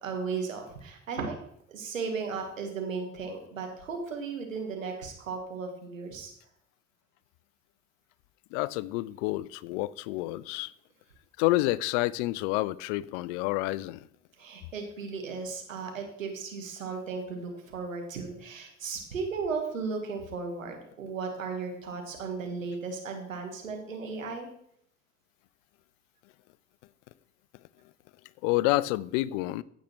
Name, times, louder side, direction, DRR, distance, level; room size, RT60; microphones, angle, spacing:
voice 1, 0.0-1.4 1.7-6.3 14.4-24.5, right 5 dB, 90° right, 1.5 m, -35 dB
voice 2, 8.5-10.7 11.4-14.0 28.4-29.6, left 18 dB, 70° left, 0.5 m, -28 dB
15.0 x 6.4 x 3.1 m
figure-of-eight pair, 50°, 38 cm